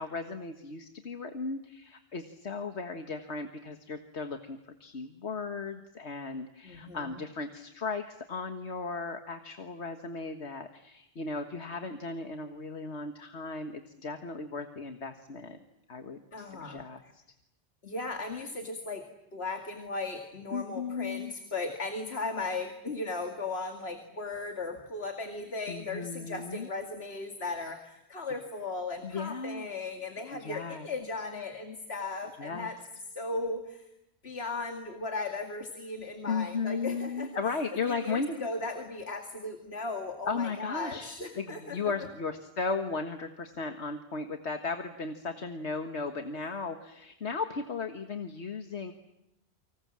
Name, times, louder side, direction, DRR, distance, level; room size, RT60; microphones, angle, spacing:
voice 1, 0.0-15.6 15.9-17.2 20.5-21.3 25.7-26.7 29.0-29.7 30.3-30.9 32.4-32.7 36.3-38.5 40.3-48.9, left 4 dB, 90° left, 6 dB, 1.9 m, -36 dB
voice 2, 6.6-7.2 16.3-16.8 17.8-32.8 33.1-33.9 34.2-37.6 37.9-41.8, left 3 dB, 70° left, 5 dB, 2.6 m, -37 dB
30.0 x 25.5 x 7.5 m, 0.83 s
omnidirectional pair, 1.1 m